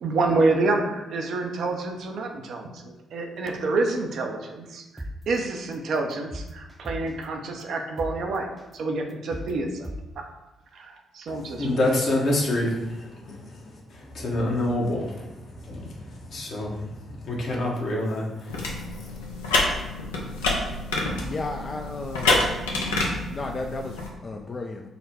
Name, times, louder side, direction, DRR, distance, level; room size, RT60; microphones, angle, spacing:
voice 1, 0.0-9.9 10.2-10.3 10.7-11.8, right 3 dB, 65° right, 0.5 m, -28 dB
sound 1, 5.0-5.1 5.6-5.7 6.1-7.2 7.6-7.7 8.0-8.1 8.6-8.7 9.1-9.5 9.8-10.0, equal, 15° right, 0.5 m, -35 dB
voice 2, 11.3-19.1, left 1 dB, 60° left, 1.0 m, -28 dB
sound 2, 18.5-24.1, left 2 dB, 85° left, 0.6 m, -27 dB
voice 3, 21.2-22.5 23.3-24.9, left 2 dB, 40° left, 0.3 m, -33 dB
4.0 x 2.2 x 4.2 m
hypercardioid pair, 45°, 0 cm